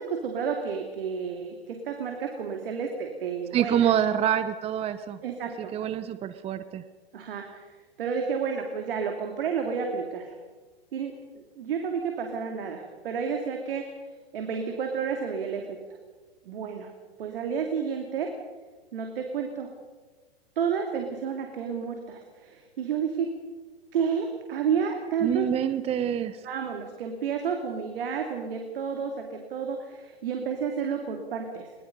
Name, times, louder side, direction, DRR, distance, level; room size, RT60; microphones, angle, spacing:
voice 1, 0.0-3.9 5.2-5.8 7.1-10.3 10.9-13.8 14.3-15.8 16.4-16.9 17.2-18.3 18.9-19.7 20.6-23.3 23.9-25.4 26.4-31.7, right 6 dB, 60° right, 3 dB, 2.8 m, -31 dB
voice 2, 3.5-5.2 5.7-6.8 25.2-26.4, right 10 dB, 20° right, 12 dB, 0.9 m, -26 dB
22.5 x 21.5 x 5.4 m, 1.3 s
hypercardioid pair, 115°, 31 cm